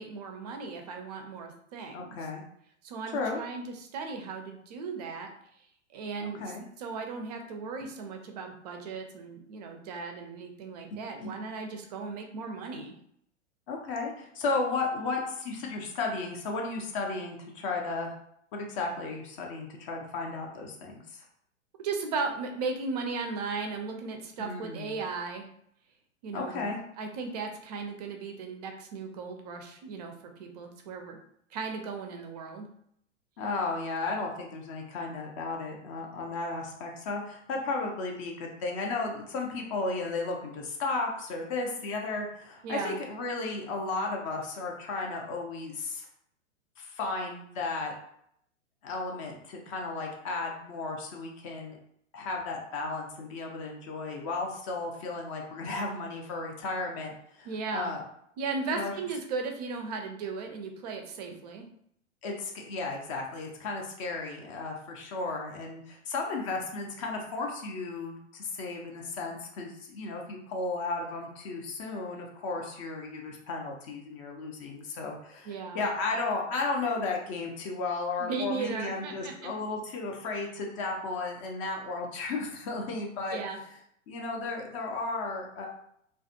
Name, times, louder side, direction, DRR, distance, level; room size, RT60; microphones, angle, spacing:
voice 1, 0.0-2.2 2.8-5.3 5.9-12.9 21.8-25.5 26.2-30.1 30.4-31.2 31.5-32.7 42.6-43.0 57.4-58.0 58.4-61.7 75.4-75.9 78.2-79.5 83.3-83.6, right 4 dB, 35° right, 4 dB, 0.4 m, -36 dB
voice 2, 1.9-2.4 3.1-3.4 6.2-6.6 11.2-11.3 13.7-18.1 18.5-21.2 24.4-24.9 26.3-26.8 33.4-46.1 46.8-47.9 48.8-51.8 52.1-58.0 58.7-58.9 62.2-83.4 84.1-85.7, left 3 dB, 25° left, 1 dB, 0.4 m, -34 dB
2.3 x 2.2 x 2.6 m, 0.71 s
figure-of-eight pair, 105°, 37 cm